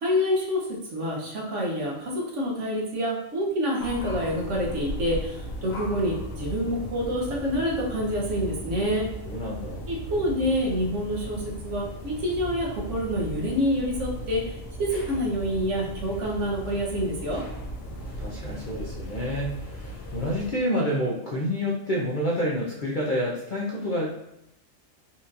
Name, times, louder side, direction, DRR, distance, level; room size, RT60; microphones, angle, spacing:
voice 1, 0.0-9.1 9.9-17.5, equal, 70° right, -2 dB, 1.1 m, -27 dB
sound 1, 3.8-20.5, equal, 80° left, 1.2 m, -37 dB
voice 2, 9.3-9.9 17.9-24.1, equal, 55° left, -4 dB, 0.5 m, -28 dB
4.3 x 2.7 x 2.5 m, 0.84 s
omnidirectional pair, 1.4 m